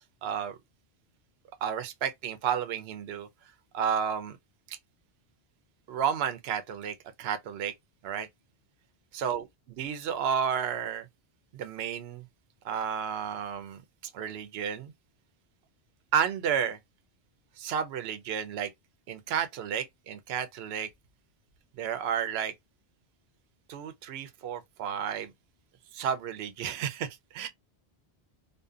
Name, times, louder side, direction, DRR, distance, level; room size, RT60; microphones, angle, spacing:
voice 1, 0.2-0.6 1.6-3.3 3.7-4.4 4.7-4.8 5.9-7.7 8.0-8.3 9.1-11.1 11.5-12.2 12.6-13.8 14.1-14.9 16.1-16.8 17.6-18.7 19.1-20.9 21.8-22.5 23.7-25.3 25.9-27.5, right 8 dB, 70° right, 0.8 m, -32 dB
2.5 x 2.2 x 2.4 m
omnidirectional pair, 1.1 m